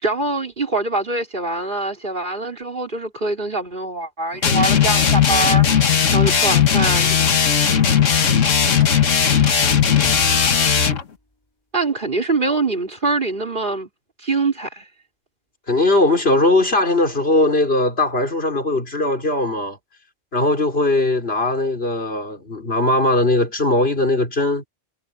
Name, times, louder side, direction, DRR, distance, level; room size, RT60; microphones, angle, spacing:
voice 1, 0.0-5.7 6.1-7.4 11.7-13.9 14.2-14.8, right 3 dB, 40° right, 4.3 m, -24 dB
sound 1, 4.4-11.0, left 7 dB, 75° left, 1.8 m, -17 dB
sound 2, 5.8-7.5 7.9-11.0, left 1 dB, 20° left, 3.2 m, -39 dB
voice 2, 15.7-19.8 20.3-24.6, left 2 dB, 50° left, 4.4 m, -19 dB
omnidirectional pair, 1.3 m